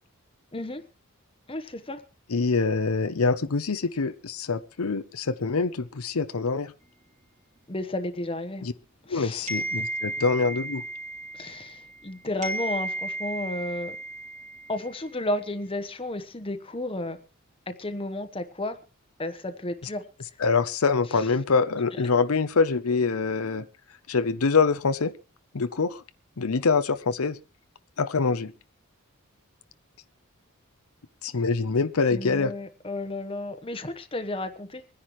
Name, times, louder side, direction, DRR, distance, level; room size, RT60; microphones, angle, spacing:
voice 1, 0.5-0.9 1.5-2.0 7.7-8.7 9.1-9.5 11.3-14.0 14.7-17.2 17.7-18.8 19.2-20.0 21.1-21.2 21.9-22.0 32.1-34.9, left 1 dB, 25° left, 9 dB, 1.1 m, -33 dB
voice 2, 2.3-6.7 8.6-8.7 9.1-10.8 20.4-23.7 24.1-25.1 25.5-26.0 26.4-27.4 28.0-28.5 31.2-32.5, left 4 dB, 90° left, 11 dB, 0.8 m, -25 dB
sound 1, 9.5-12.1 12.4-15.0, right 2 dB, 35° right, 3.3 m, -34 dB
25.0 x 10.0 x 3.1 m, 0.34 s
head